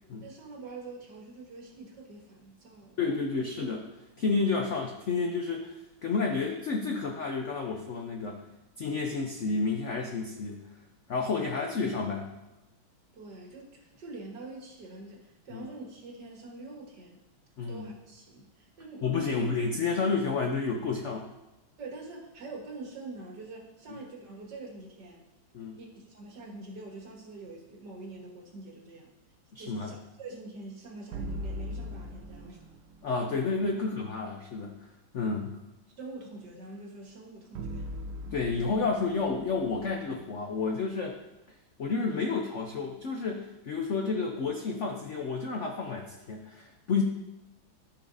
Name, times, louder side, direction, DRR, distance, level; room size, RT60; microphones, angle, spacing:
voice 1, 0.2-3.0 13.1-17.2 17.7-19.4 21.8-25.3 25.7-29.1 29.6-32.6 36.0-37.9, right 3 dB, 55° right, -1 dB, 2.0 m, -45 dB
voice 2, 3.0-3.9 4.2-5.7 6.0-8.4 8.8-10.6 11.1-12.3 15.5-15.7 17.6-17.9 19.0-21.2 25.5-25.8 29.5-29.9 33.0-34.7 35.1-35.6 38.3-41.2 41.8-47.0, left 4 dB, 80° left, 1 dB, 0.6 m, -30 dB
sound 1, 31.1-33.3 37.5-40.8, equal, 85° right, 1.5 m, -40 dB
14.0 x 5.7 x 2.7 m, 1.0 s
omnidirectional pair, 2.3 m